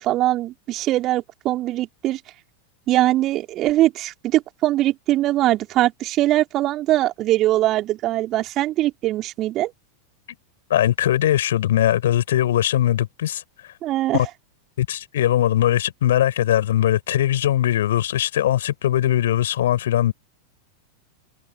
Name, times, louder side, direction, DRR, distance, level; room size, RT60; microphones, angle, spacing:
voice 1, 0.0-2.2 2.9-9.7 13.8-14.3, right 15 dB, 35° right, 3.7 m, -21 dB
voice 2, 10.7-13.4 14.1-14.3 14.8-20.1, left 12 dB, 60° left, 4.9 m, -20 dB
figure-of-eight pair, 90°, 0 cm